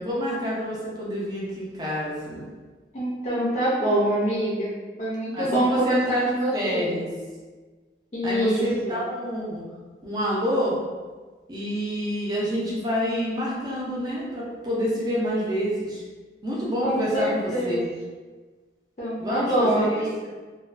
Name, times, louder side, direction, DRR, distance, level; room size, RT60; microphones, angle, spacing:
voice 1, 0.0-2.4 5.3-7.1 8.2-9.6 10.0-10.8 11.5-16.0 16.4-17.9 19.2-20.1, equal, 25° right, -6 dB, 0.5 m, -28 dB
voice 2, 2.9-4.7 5.0-7.0 8.1-9.0 16.8-17.8 19.0-20.1, right 1 dB, 40° left, -7 dB, 0.4 m, -25 dB
2.4 x 2.2 x 2.3 m, 1.4 s
head